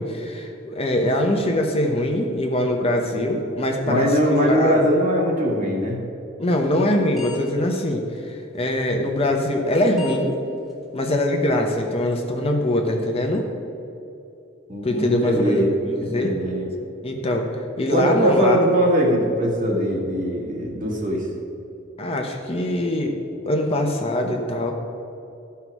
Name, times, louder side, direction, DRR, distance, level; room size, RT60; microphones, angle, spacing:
voice 1, 0.0-4.8 6.4-10.4 10.9-13.4 14.8-16.3 17.0-17.5 17.8-18.6 22.0-23.2 23.5-24.7, left 1 dB, 30° left, 2 dB, 0.9 m, -22 dB
voice 2, 3.8-6.0 14.7-15.7 16.0-16.7 17.9-21.3, equal, 40° right, -2 dB, 1.9 m, -21 dB
sound 1, 6.6-6.9 7.1-7.4 7.7-7.8 8.7-8.8 9.7-9.8 10.0-10.2 10.7-10.8 11.2-11.3 11.7-11.8, left 5 dB, ahead, 1.3 m, -38 dB
13.0 x 5.7 x 4.7 m, 2.8 s
head